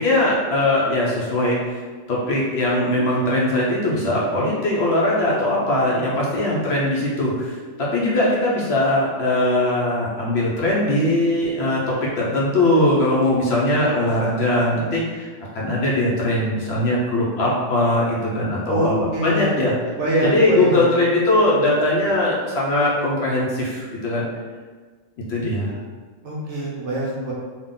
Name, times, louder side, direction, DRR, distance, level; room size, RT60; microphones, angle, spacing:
voice 1, 0.0-1.6 2.1-7.6 7.9-15.3 15.5-19.7 20.2-24.2 25.3-25.7, left 1 dB, 60° left, -5 dB, 0.8 m, -20 dB
voice 2, 18.7-19.6 20.0-20.8 26.2-27.3, right 1 dB, 60° right, -4 dB, 1.0 m, -24 dB
3.5 x 2.4 x 3.6 m, 1.4 s
omnidirectional pair, 1.4 m